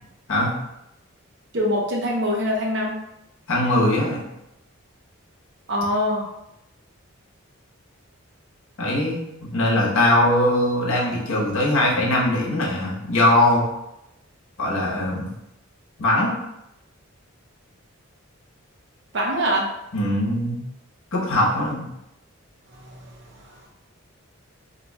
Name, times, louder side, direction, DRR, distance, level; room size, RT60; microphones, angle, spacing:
voice 1, 1.5-3.0 5.7-6.3 19.1-19.7 22.7-23.1 23.4-23.5, equal, 55° right, -1 dB, 0.7 m, -24 dB
voice 2, 3.5-4.2 8.8-13.7 14.6-15.3 16.0-16.3 19.9-20.6 21.1-21.9, left 1 dB, 70° left, -4 dB, 1.0 m, -21 dB
2.7 x 2.3 x 4.1 m, 0.87 s
head